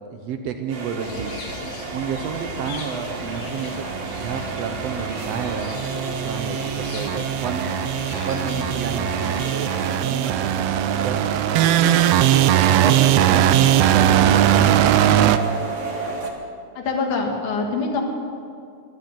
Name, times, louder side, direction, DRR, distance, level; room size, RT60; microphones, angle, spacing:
voice 1, 0.1-1.3 1.9-3.9 4.2-5.7 6.1-7.8 8.3-10.5 11.0-11.3 11.6-12.5 12.8-15.4, right 6 dB, 70° right, 7 dB, 1.7 m, -30 dB
sound 1, 0.7-16.3, right 3 dB, 45° right, 1.0 m, -31 dB
sound 2, 1.0-9.5, left 3 dB, 60° left, 2.7 m, -38 dB
sound 3, 3.0-15.4, right 11 dB, 90° right, 1.4 m, -20 dB
voice 2, 16.8-18.0, left 4 dB, 85° left, 2 dB, 3.3 m, -24 dB
14.0 x 12.0 x 7.6 m, 2.4 s
omnidirectional pair, 3.4 m